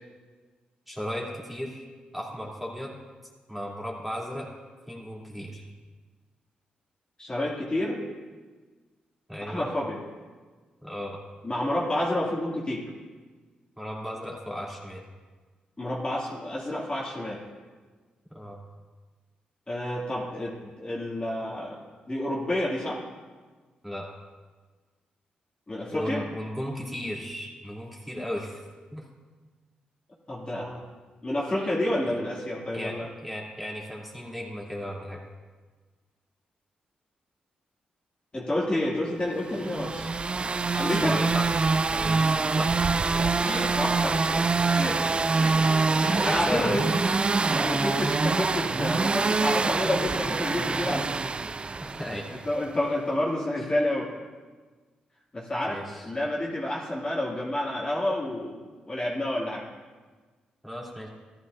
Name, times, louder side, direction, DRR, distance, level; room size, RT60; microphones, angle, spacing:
voice 1, 0.9-1.8 2.1-2.9 3.5-4.5 4.9-5.7 9.3-9.7 10.8-11.2 13.8-15.0 18.3-18.6 23.8-24.1 25.9-28.6 28.9-29.0 32.7-33.0 33.2-35.2 40.9-41.5 41.9-42.7 45.4-46.9 51.8-52.4 55.6-56.0 60.6-61.1, equal, 5° right, -4 dB, 3.2 m, -35 dB
voice 2, 7.2-8.0 9.5-10.0 11.4-12.9 15.8-17.4 19.7-21.8 22.1-23.0 25.7-26.2 30.3-30.8 31.2-33.1 38.3-40.1 40.7-41.2 43.2-44.4 44.8-45.7 46.0-46.9 47.3-51.2 52.4-54.1 55.3-58.6 58.9-59.7, left 1 dB, 30° left, -5 dB, 2.6 m, -29 dB
sound 1, 39.5-52.5, right 4 dB, 35° right, 0.3 m, -25 dB
14.5 x 11.5 x 2.7 m, 1.4 s
supercardioid pair, 55°, 3 cm